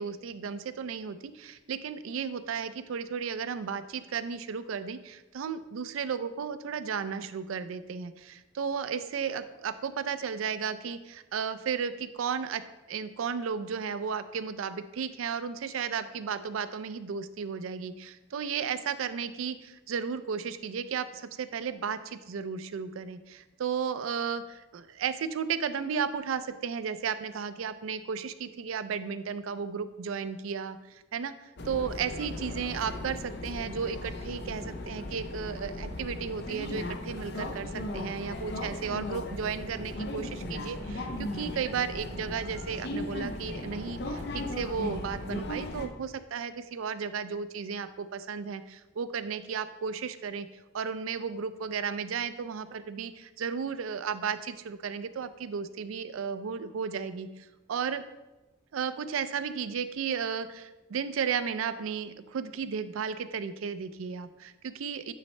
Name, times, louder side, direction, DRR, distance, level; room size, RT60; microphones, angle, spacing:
voice 1, 0.0-12.6 12.9-50.5 50.7-58.0 58.7-65.1, right 6 dB, 85° right, 12 dB, 0.4 m, -34 dB
sound 1, 31.6-45.9, left 1 dB, 55° left, 0.6 m, -37 dB
8.9 x 4.2 x 3.2 m, 1.1 s
head